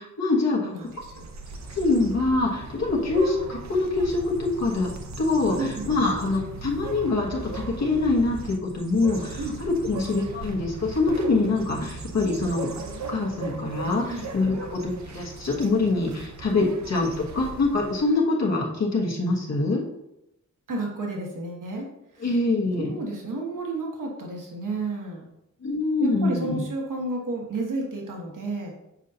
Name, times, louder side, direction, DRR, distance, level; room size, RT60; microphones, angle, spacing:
voice 1, 0.0-0.7 1.7-4.9 5.2-12.7 13.1-19.8 22.2-22.9 25.6-26.6, left 3 dB, 55° left, -2 dB, 1.3 m, -24 dB
voice 2, 0.6-1.3 5.6-5.9 9.4-9.6 14.0-14.2 16.6-16.7 20.7-21.9 22.1-22.3 22.8-25.2 26.0-28.7, right 2 dB, 80° right, 0 dB, 1.4 m, -32 dB
sound 1, 0.8-18.1, right 4 dB, 60° right, 0.8 m, -38 dB
7.2 x 5.4 x 2.8 m, 0.86 s
wide cardioid pair, 160°, 31 cm